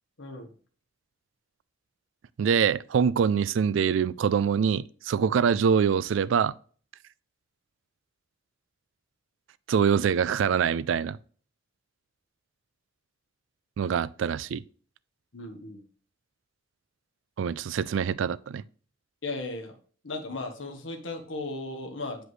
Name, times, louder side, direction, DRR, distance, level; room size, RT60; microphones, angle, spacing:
voice 1, 0.2-0.5 15.3-15.8 19.2-19.8 20.0-22.2, left 2 dB, 80° left, 1.3 m, -36 dB
voice 2, 2.4-6.5 9.7-11.2 13.8-14.6 17.4-18.6, right 7 dB, 75° right, 0.3 m, -24 dB
7.8 x 5.0 x 3.1 m
head